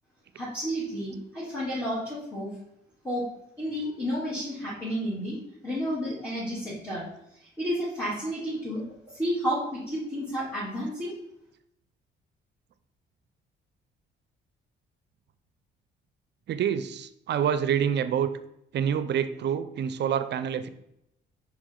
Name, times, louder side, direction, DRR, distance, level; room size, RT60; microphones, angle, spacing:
voice 1, 0.3-2.5 3.0-3.2 3.6-5.4 5.6-7.0 7.3-8.8 9.1-11.1, equal, 10° left, -8 dB, 2.5 m, -31 dB
voice 2, 16.5-18.3 18.7-20.7, right 8 dB, 60° right, 12 dB, 0.5 m, -27 dB
5.6 x 5.0 x 3.7 m, 0.78 s
cardioid pair, 90°, 20 cm